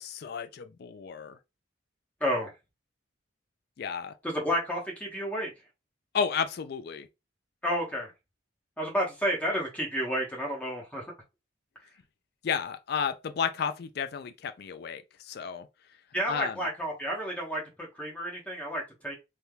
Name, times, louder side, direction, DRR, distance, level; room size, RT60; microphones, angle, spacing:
voice 1, 0.0-1.3 3.8-4.1 6.1-7.1 12.4-15.7 16.3-16.5, left 6 dB, 55° left, 0.3 m, -32 dB
voice 2, 2.2-2.5 4.2-5.5 7.6-8.1 8.8-11.0 16.1-17.6 17.9-19.2, equal, 5° left, 0.9 m, -31 dB
3.3 x 2.8 x 2.2 m
head